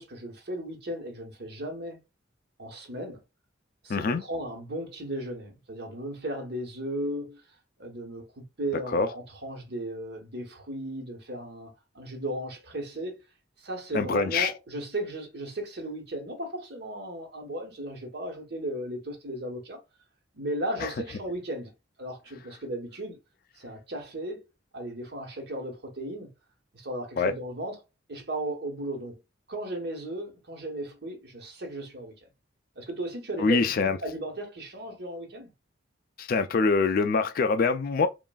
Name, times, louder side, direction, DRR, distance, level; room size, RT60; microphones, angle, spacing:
voice 1, 0.0-2.0 2.6-3.2 3.8-7.4 7.8-13.2 13.6-19.8 20.3-21.7 22.0-23.2 23.6-24.4 24.7-26.3 26.7-27.8 28.1-29.2 29.5-32.1 32.8-35.5, right 1 dB, 55° right, 1.0 m, -35 dB
voice 2, 3.9-4.2 8.9-9.1 13.9-14.5 20.8-20.9 27.2-27.3 33.4-34.0 36.2-38.1, left 4 dB, 50° left, 0.3 m, -24 dB
3.1 x 2.4 x 2.2 m
head